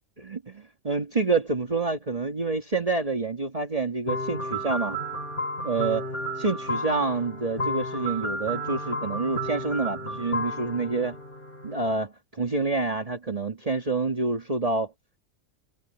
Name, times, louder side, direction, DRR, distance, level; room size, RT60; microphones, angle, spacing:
voice 1, 0.2-5.0 5.6-6.1 6.4-11.2 11.6-14.9, right 3 dB, 30° right, 1.8 m, -27 dB
sound 1, 4.1-11.9, equal, 45° left, 7.2 m, -32 dB
omnidirectional pair, 1.3 m